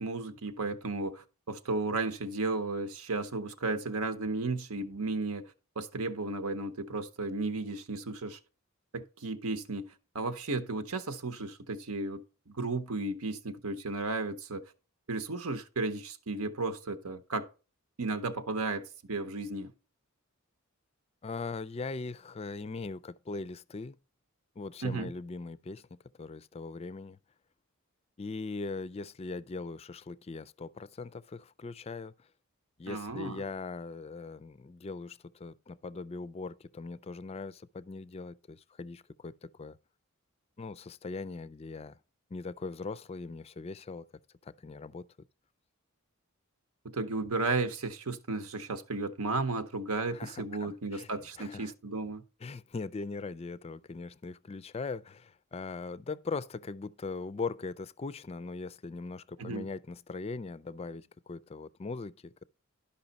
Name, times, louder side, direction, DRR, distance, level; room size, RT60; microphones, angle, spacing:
voice 1, 0.0-8.4 8.9-14.7 15.1-17.5 18.0-19.7 24.8-25.1 32.9-33.4 46.8-52.2 59.4-59.7, right 3 dB, 85° right, 0.9 m, -34 dB
voice 2, 21.2-24.0 24.6-25.9 26.2-27.2 28.2-32.3 32.8-39.8 40.6-42.0 42.3-44.0 44.4-45.1 50.1-51.1 51.4-51.7 52.4-62.4, left 3 dB, 25° left, 0.4 m, -40 dB
12.0 x 5.5 x 4.0 m
head